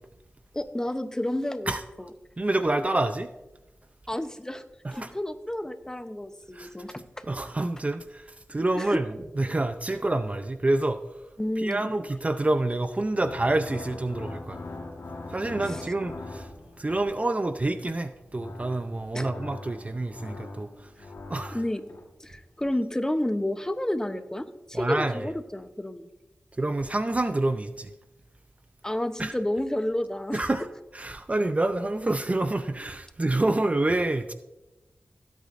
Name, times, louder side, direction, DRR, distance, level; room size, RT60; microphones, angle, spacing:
voice 1, 0.5-1.7 2.0-2.1 4.1-4.6 4.9-7.0 8.7-9.0 11.4-11.9 19.1-19.3 21.5-21.8 22.2-26.1 28.8-30.5, left 1 dB, 15° left, 0.8 m, -30 dB
voice 2, 2.4-3.3 4.8-5.1 6.5-6.7 7.2-11.0 11.6-14.6 15.3-16.5 16.8-20.7 21.3-21.6 24.7-25.3 26.6-27.9 29.2-29.4 30.3-30.7 30.9-34.3, right 2 dB, 30° right, 0.5 m, -27 dB
sound 1, 13.2-17.1 18.1-22.1, left 2 dB, 85° left, 1.5 m, -41 dB
16.5 x 8.3 x 2.6 m
wide cardioid pair, 60°, 4 cm